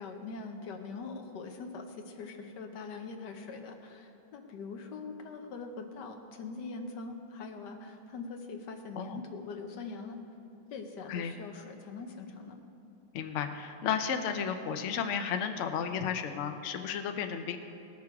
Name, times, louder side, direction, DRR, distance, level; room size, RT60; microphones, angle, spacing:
voice 1, 0.0-10.2 10.7-12.6, left 4 dB, 65° left, 4 dB, 1.4 m, -42 dB
voice 2, 13.1-17.6, left 7 dB, 90° left, 7 dB, 0.6 m, -33 dB
18.5 x 6.7 x 4.7 m, 2.9 s
omnidirectional pair, 2.2 m